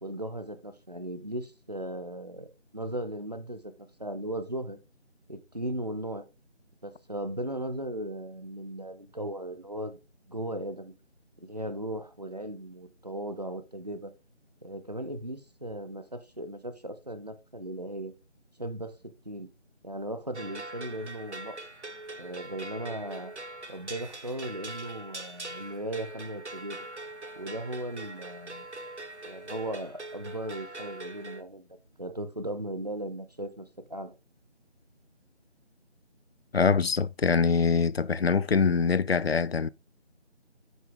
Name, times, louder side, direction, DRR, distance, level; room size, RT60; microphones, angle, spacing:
voice 1, 0.0-4.8 5.3-6.2 6.8-10.0 10.3-10.9 11.4-14.1 14.6-18.1 18.6-18.9 19.2-19.5 19.8-21.6 22.2-23.3 23.7-26.8 27.4-28.7 29.2-31.7 32.0-34.1, right 1 dB, 35° right, 0.7 m, -37 dB
sound 1, 20.3-31.4, right 2 dB, 75° right, 1.2 m, -42 dB
voice 2, 36.5-39.7, left 5 dB, 60° left, 0.4 m, -24 dB
8.1 x 5.3 x 3.6 m
figure-of-eight pair, 170°, 35 cm